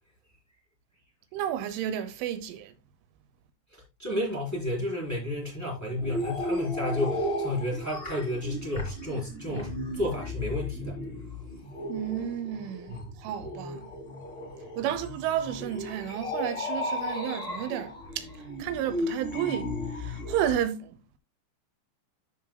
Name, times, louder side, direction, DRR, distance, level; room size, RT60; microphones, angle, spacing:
voice 1, 1.3-2.7 11.9-13.9 14.8-18.2 18.6-19.7 20.0-21.2, right 10 dB, 85° right, 3.3 m, -32 dB
voice 2, 4.0-11.0 12.9-13.2, left 1 dB, 5° left, 3.6 m, -31 dB
sound 1, 6.0-20.6, left 1 dB, 35° left, 0.8 m, -35 dB
14.0 x 6.0 x 2.2 m
omnidirectional pair, 5.5 m